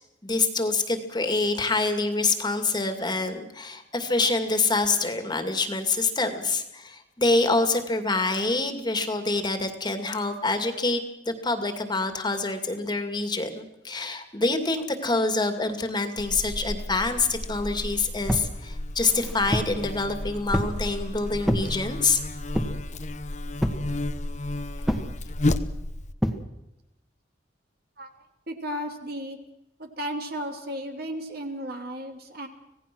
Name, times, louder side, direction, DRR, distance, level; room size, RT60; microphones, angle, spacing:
voice 1, 0.2-22.2, left 3 dB, 25° left, 7 dB, 2.3 m, -26 dB
Buzz, 16.2-26.1, left 1 dB, 40° left, 1.1 m, -32 dB
sound 1, 18.3-18.5 19.1-19.8 20.5-20.8 21.4-21.7 22.5-22.9 23.6-23.9 24.9-25.1 26.2-26.4, equal, ahead, 1.8 m, -27 dB
voice 2, 28.0-29.4 29.8-32.5, equal, 60° right, 4 dB, 3.0 m, -34 dB
26.5 x 17.5 x 6.2 m, 0.92 s
head